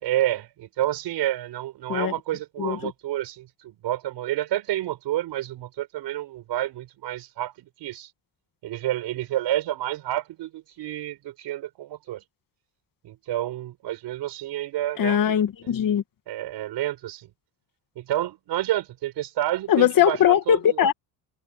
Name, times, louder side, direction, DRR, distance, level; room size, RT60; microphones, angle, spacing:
voice 1, 0.0-7.5 7.8-8.1 8.6-12.2 13.0-15.2 16.3-17.3 17.9-20.9, right 13 dB, 70° right, 5.1 m, -29 dB
voice 2, 2.6-2.9 15.0-16.0 19.7-20.9, left 9 dB, 50° left, 2.2 m, -20 dB
cardioid pair, 125°, 43 cm